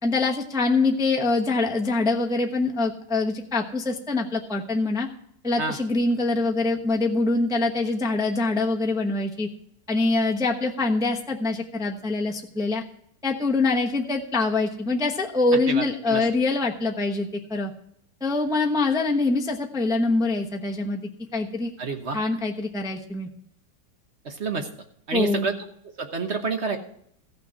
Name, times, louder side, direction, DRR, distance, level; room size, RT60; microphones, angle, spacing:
voice 1, 0.0-5.1 5.4-9.5 9.9-12.8 13.2-17.7 18.2-21.7 22.1-23.3 25.1-25.5, left 3 dB, 5° right, 1 dB, 0.6 m, -24 dB
voice 2, 15.7-16.2 21.8-22.2 24.2-24.7 25.1-25.6 25.8-26.8, right 4 dB, 45° right, 6 dB, 1.2 m, -28 dB
14.5 x 6.1 x 6.3 m, 0.69 s
omnidirectional pair, 1.9 m